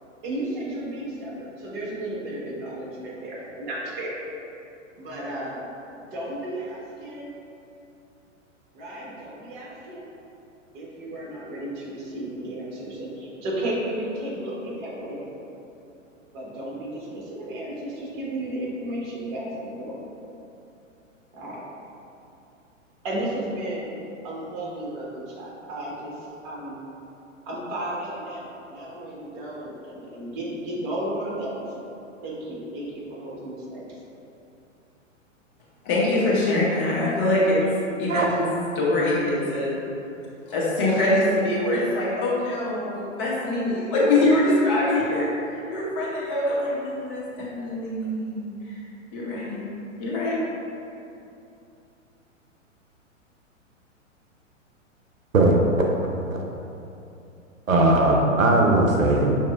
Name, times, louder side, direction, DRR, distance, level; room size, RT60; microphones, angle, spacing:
voice 1, 0.2-4.2 4.5-4.6 5.0-5.7 6.0-7.3 8.7-10.1 10.7-15.3 16.3-20.0 21.3-21.6 23.0-23.9 24.2-26.8 27.5-31.9 32.2-34.0, right 1 dB, 35° right, -5 dB, 1.1 m, -33 dB
voice 2, 35.8-37.6 38.0-38.3 38.7-39.7 40.5-48.8 49.1-49.6 50.0-50.4, left 1 dB, 30° left, -6 dB, 0.9 m, -24 dB
voice 3, 57.7-59.4, right 2 dB, 90° right, 0 dB, 0.6 m, -19 dB
5.8 x 2.8 x 2.4 m, 2.8 s
figure-of-eight pair, 110°, 39 cm